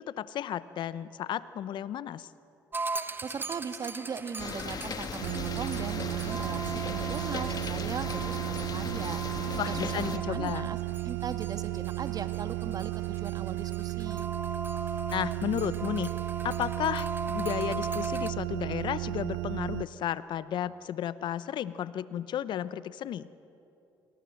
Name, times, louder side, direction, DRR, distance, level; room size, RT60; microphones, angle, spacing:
voice 1, 0.0-2.3 9.6-10.7 15.1-16.1 16.4-23.3, left 10 dB, 65° left, 16 dB, 0.8 m, -33 dB
sound 1, 2.7-18.3, right 3 dB, 25° right, 1.2 m, -39 dB
voice 2, 3.2-9.2 9.5-10.8 11.0-14.3, right 6 dB, 45° right, 9 dB, 1.8 m, -39 dB
sound 2, 4.4-10.2, left 5 dB, 45° left, 1.9 m, -38 dB
sound 3, 5.2-19.8, right 20 dB, 85° right, 0.5 m, -34 dB
27.5 x 23.5 x 7.8 m, 2.8 s
hypercardioid pair, 60°, 9 cm